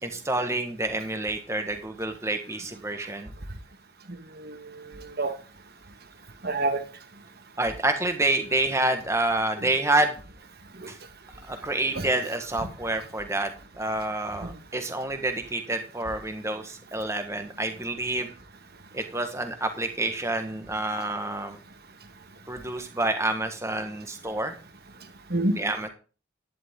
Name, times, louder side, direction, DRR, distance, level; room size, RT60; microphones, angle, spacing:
voice 1, 0.0-3.3 7.6-10.2 10.9-11.0 11.5-13.5 13.8-18.3 18.9-21.6 22.5-24.5 25.5-25.9, right 2 dB, 15° right, 1.6 m, -28 dB
voice 2, 4.1-5.4 6.4-6.8 10.8-10.9 11.9-12.1 14.4-14.5 25.3-25.6, right 2 dB, 45° right, 1.6 m, -29 dB
11.5 x 11.0 x 3.8 m
head